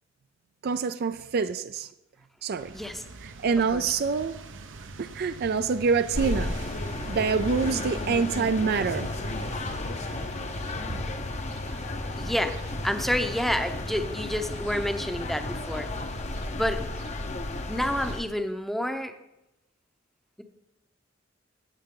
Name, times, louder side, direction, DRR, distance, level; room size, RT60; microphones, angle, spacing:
voice 1, 0.6-1.9 2.4-2.7 3.2-4.4 5.0-6.5 7.1-9.1, right 5 dB, 55° right, 0.4 m, -26 dB
sound 1, 2.6-18.2, right 3 dB, 70° right, 0.8 m, -45 dB
voice 2, 2.7-3.0 3.7-4.0 12.1-15.9 16.5-16.8 17.7-19.1, equal, ahead, 0.7 m, -29 dB
sound 2, 6.1-18.2, left 2 dB, 35° left, 0.7 m, -33 dB
sound 3, 6.9-12.8, left 1 dB, 80° left, 2.9 m, -52 dB
15.5 x 8.1 x 3.8 m
head